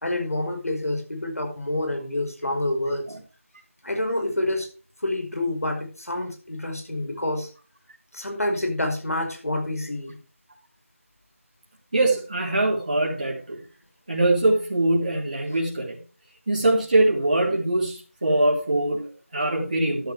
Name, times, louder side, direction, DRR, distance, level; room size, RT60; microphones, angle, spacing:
voice 1, 0.0-3.1 3.8-4.7 5.0-7.5 8.1-10.2, left 1 dB, 80° left, 3 dB, 5.1 m, -27 dB
voice 2, 11.9-13.6 14.1-16.0 16.5-20.1, right 2 dB, 35° right, -3 dB, 3.5 m, -23 dB
12.5 x 10.5 x 3.5 m, 0.34 s
figure-of-eight pair, 175°, 8 cm